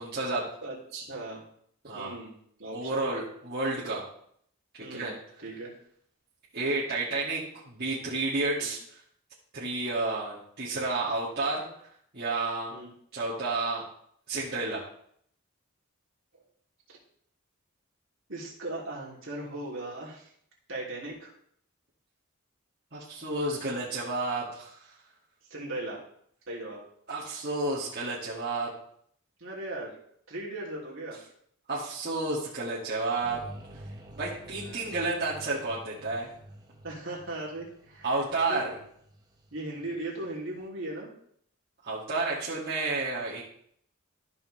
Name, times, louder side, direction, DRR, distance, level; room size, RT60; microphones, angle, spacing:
voice 1, 0.0-0.5 1.8-2.1 2.7-4.0 4.8-5.1 6.5-9.0 9.5-11.7 12.1-12.7 13.1-13.8 14.3-14.8 22.9-24.9 27.1-28.7 31.7-33.4 34.1-36.3 38.0-38.6 41.8-43.4, right 3 dB, 45° right, -9 dB, 2.2 m, -31 dB
voice 2, 0.6-1.4 1.9-2.3 2.6-3.1 4.8-5.1 5.4-5.7 8.6-8.7 12.7-12.9 16.9-17.0 18.3-20.3 20.7-21.3 25.5-26.0 26.5-26.8 29.4-30.0 30.3-31.2 34.6-34.9 36.8-38.2 38.5-38.7 39.5-41.1, right 2 dB, 65° right, -4 dB, 3.1 m, -38 dB
sound 1, 33.2-40.3, right 1 dB, 20° right, 1.0 m, -48 dB
14.0 x 5.9 x 3.3 m, 0.66 s
head